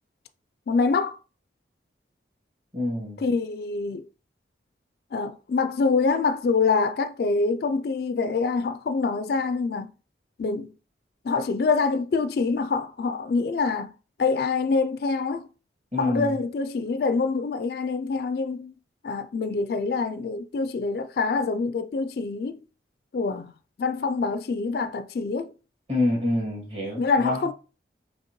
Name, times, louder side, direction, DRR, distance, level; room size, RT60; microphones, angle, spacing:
voice 1, 0.7-1.2 3.2-4.1 5.1-9.9 10.4-10.7 11.2-13.9 14.2-15.5 16.0-18.7 19.0-22.6 23.1-23.5 23.8-25.5 27.0-27.5, left 4 dB, 55° left, 0.3 m, -25 dB
voice 2, 2.7-3.2 15.9-16.3 25.9-27.5, left 2 dB, 35° right, 1.9 m, -26 dB
5.4 x 2.8 x 3.0 m
head